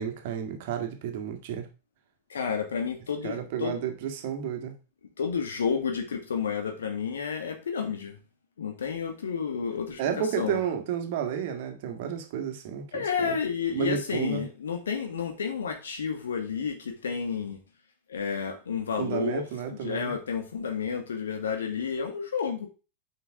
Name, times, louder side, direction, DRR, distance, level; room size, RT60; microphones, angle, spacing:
voice 1, 0.0-1.7 3.2-4.8 10.0-13.4 13.7-14.5 19.0-20.1, right 8 dB, 50° right, 1.8 m, -31 dB
voice 2, 2.3-3.8 5.2-8.2 8.6-10.6 12.9-17.6 18.1-22.7, left 6 dB, 65° left, 1.9 m, -31 dB
9.5 x 5.8 x 3.7 m
figure-of-eight pair, 90°, 0 cm